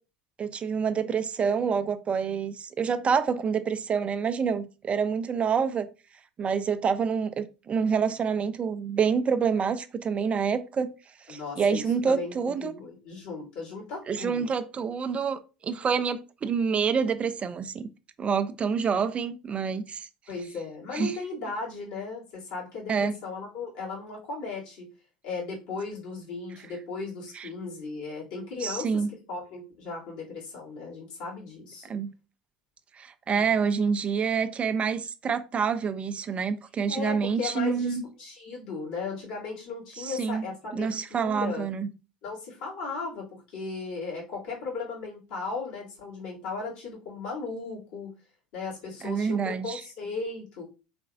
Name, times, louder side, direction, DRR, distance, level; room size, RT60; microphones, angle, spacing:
voice 1, 0.4-5.9 6.4-10.9 11.3-12.7 14.1-17.9 18.2-20.1 20.9-21.1 22.9-23.1 27.3-27.5 28.6-29.1 31.9-32.1 33.0-38.0 40.0-40.4 40.7-41.9 49.0-49.8, right 6 dB, 30° right, 0.4 m, -27 dB
voice 2, 11.3-14.4 20.3-24.9 25.2-31.9 33.4-33.5 36.9-41.7 42.2-48.1 48.5-50.6, left 4 dB, 65° left, 2.3 m, -36 dB
4.2 x 3.8 x 2.4 m
figure-of-eight pair, 70°, 4 cm